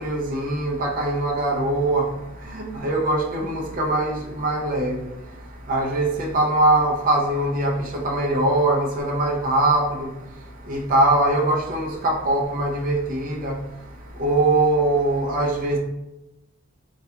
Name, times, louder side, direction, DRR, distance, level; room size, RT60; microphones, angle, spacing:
voice 1, 0.0-2.0 2.5-5.0 5.7-7.7 8.0-10.1 10.7-13.5 14.2-15.8, right 2 dB, 40° right, -1 dB, 0.4 m, -22 dB
2.3 x 2.2 x 2.7 m, 0.95 s
head